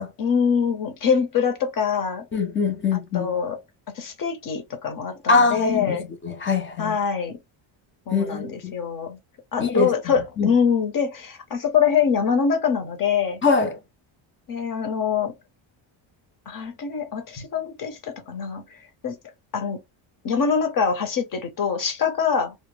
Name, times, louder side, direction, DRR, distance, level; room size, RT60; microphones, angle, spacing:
voice 1, 0.2-2.2 3.1-3.6 3.9-6.1 6.8-7.4 8.1-9.2 9.5-13.4 14.5-15.3 16.5-18.8 19.0-19.2 19.5-19.8 20.2-22.5, left 6 dB, 40° left, 0.8 m, -24 dB
voice 2, 2.3-3.3 5.3-7.0 8.1-8.7 9.6-10.5 13.4-13.8 17.4-17.5, left 4 dB, 25° left, 0.4 m, -23 dB
2.1 x 2.0 x 3.1 m
cardioid pair, 130°, 49 cm